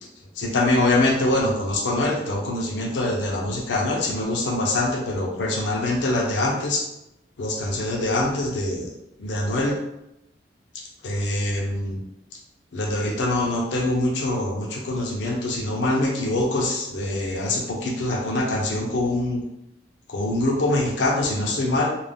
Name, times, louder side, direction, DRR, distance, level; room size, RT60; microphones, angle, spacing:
voice 1, 0.4-6.8 7.4-8.9 9.2-9.8 11.0-12.0 12.7-19.4 20.1-21.9, left 1 dB, 90° left, 0 dB, 0.5 m, -24 dB
2.5 x 2.0 x 3.4 m, 0.85 s
head